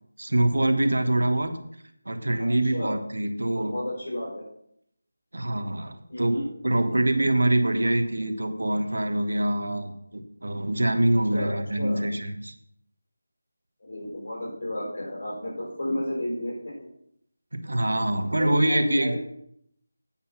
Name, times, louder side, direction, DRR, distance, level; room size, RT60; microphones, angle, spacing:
voice 1, 0.2-1.6 2.0-3.7 5.3-6.4 6.6-12.5 17.5-19.1, right 1 dB, 80° right, 8 dB, 1.3 m, -25 dB
voice 2, 2.4-3.0 3.4-4.4 6.1-6.5 11.3-12.1 13.8-16.9 18.4-19.2, left 1 dB, 55° left, -3 dB, 4.4 m, -32 dB
8.8 x 5.6 x 5.7 m, 0.72 s
figure-of-eight pair, 170°, 0 cm